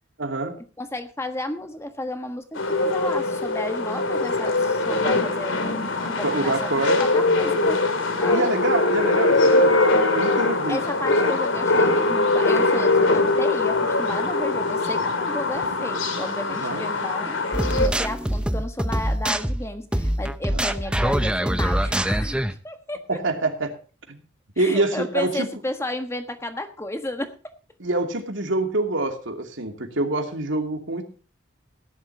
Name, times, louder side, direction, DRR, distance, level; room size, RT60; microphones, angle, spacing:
voice 1, 0.2-0.6 6.2-7.0 8.3-9.8 10.1-10.8 16.5-16.8 20.5-20.6 23.1-23.7 24.1-24.2 24.6-25.5 27.8-31.0, right 2 dB, 70° right, 4 dB, 2.7 m, -25 dB
voice 2, 0.8-6.7 7.0-7.8 8.2-8.5 10.7-23.2 24.6-27.5, left 1 dB, 15° left, 7 dB, 1.4 m, -32 dB
sound 1, 2.6-17.9, left 2 dB, 75° left, 2.8 m, -22 dB
sound 2, 17.5-22.5, right 1 dB, 5° right, 0.7 m, -24 dB
17.5 x 11.5 x 2.8 m, 0.37 s
head